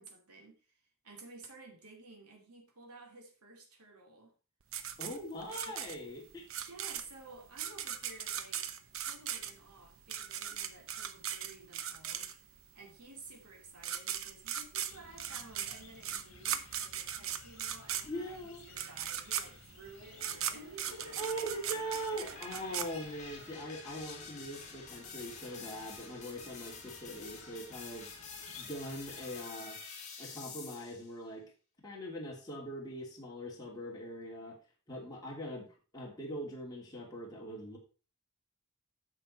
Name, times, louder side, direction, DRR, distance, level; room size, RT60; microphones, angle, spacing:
voice 1, 0.0-4.4 5.5-5.8 6.6-8.7 9.0-21.5 21.7-22.8, right 2 dB, 90° right, 2.7 m, -54 dB
sound 1, 4.7-12.6 13.5-13.6 13.8-23.5, right 9 dB, 65° right, 0.9 m, -38 dB
voice 2, 5.0-6.5 18.0-18.6 20.9-29.8 30.2-31.4 31.8-34.6 34.9-35.7 35.9-37.8, equal, 15° left, 2.6 m, -42 dB
sound 2, 14.9-29.4, left 5 dB, 60° left, 1.7 m, -57 dB
sound 3, 20.0-31.1, left 5 dB, 35° left, 2.8 m, -49 dB
9.9 x 6.9 x 4.3 m
head